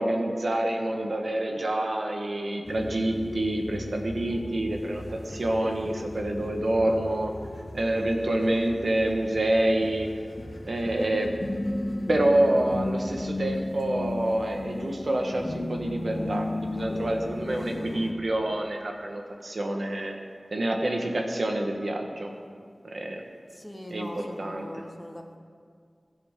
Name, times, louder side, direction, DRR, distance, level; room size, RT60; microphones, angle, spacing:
voice 1, 0.0-7.3 7.7-10.1 10.6-11.4 12.1-20.2 20.5-22.3 22.9-23.2 23.9-24.9, right 1 dB, 65° right, 2 dB, 1.4 m, -27 dB
sound 1, 2.6-18.1, left 1 dB, 45° left, 1.4 m, -35 dB
voice 2, 23.5-25.4, equal, 10° left, 3 dB, 1.2 m, -41 dB
21.5 x 7.8 x 3.7 m, 2.1 s
wide cardioid pair, 60°, 0 cm